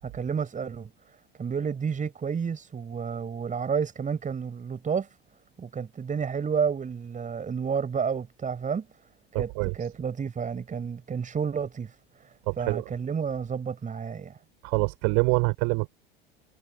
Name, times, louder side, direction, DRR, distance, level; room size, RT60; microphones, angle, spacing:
voice 1, 0.0-5.1 5.6-8.9 9.3-14.4, right 6 dB, 25° right, 7.5 m, -31 dB
voice 2, 9.3-9.7 12.5-12.8 14.6-15.9, right 39 dB, 55° right, 7.5 m, -25 dB
figure-of-eight pair, 70°, 29 cm